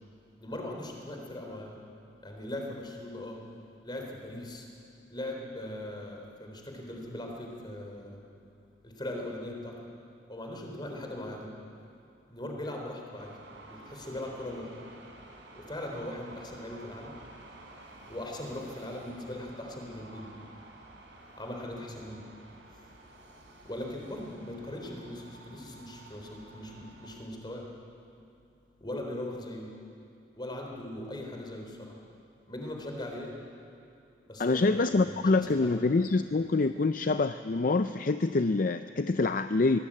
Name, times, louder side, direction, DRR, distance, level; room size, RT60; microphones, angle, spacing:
voice 1, 0.4-1.8 2.2-3.4 3.8-4.7 5.1-8.2 8.8-9.9 10.3-11.5 12.3-13.4 13.6-14.7 15.6-17.2 18.1-20.3 21.3-22.3 22.7-22.9 23.6-27.7 28.8-29.7 30.3-32.0 32.5-33.4 34.3-35.7, left 1 dB, 25° left, 1 dB, 3.8 m, -40 dB
sound 1, 13.2-27.2, right 2 dB, 85° right, 3.9 m, -52 dB
voice 2, 34.4-39.8, left 3 dB, 50° left, 10 dB, 0.5 m, -26 dB
23.0 x 17.0 x 8.7 m, 2.5 s
head